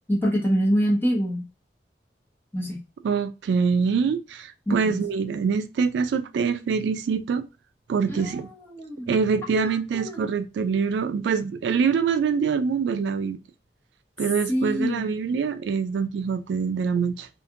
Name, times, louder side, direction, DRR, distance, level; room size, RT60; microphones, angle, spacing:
voice 1, 0.1-1.4 2.5-2.8 4.7-5.0 8.1-8.3 8.6-9.1 9.5-9.7 9.9-10.2 14.5-15.1, equal, 10° left, 0.8 m, -25 dB
voice 2, 3.0-7.5 7.9-8.5 9.1-13.4 14.2-17.3, right 6 dB, 85° right, 0.3 m, -24 dB
2.7 x 2.4 x 2.5 m
head